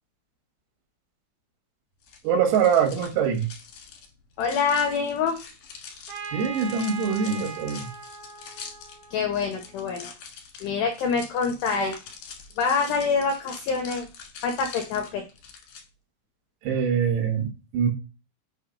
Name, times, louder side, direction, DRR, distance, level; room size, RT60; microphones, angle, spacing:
sound 1, 2.0-15.8, left 6 dB, 75° left, 1.9 m, -44 dB
voice 1, 2.2-3.5 6.3-7.9 16.6-17.9, right 7 dB, 90° right, 4 dB, 4.3 m, -23 dB
voice 2, 4.4-5.4 9.1-10.1 10.6-12.0 12.6-14.1 14.4-15.2, left 5 dB, 90° left, 4 dB, 2.4 m, -25 dB
Trumpet, 6.1-9.8, right 5 dB, 65° right, 2.6 m, -39 dB
8.4 x 3.1 x 5.3 m, 0.31 s
omnidirectional pair, 5.9 m